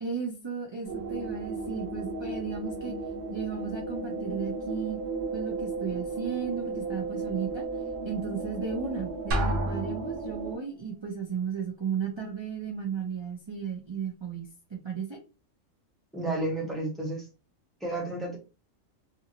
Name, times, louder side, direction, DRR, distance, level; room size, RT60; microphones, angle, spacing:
voice 1, 0.0-2.9 3.3-5.0 5.3-7.7 8.0-15.2, right 6 dB, 50° right, 0 dB, 0.3 m, -35 dB
sound 1, 0.8-10.6, right 3 dB, 15° right, 1.2 m, -35 dB
Drum, 9.3-10.5, right 1 dB, 70° right, 1.1 m, -29 dB
voice 2, 16.1-17.3 17.8-18.4, right 2 dB, ahead, -2 dB, 0.9 m, -31 dB
2.8 x 2.6 x 2.7 m, 0.32 s
omnidirectional pair, 1.4 m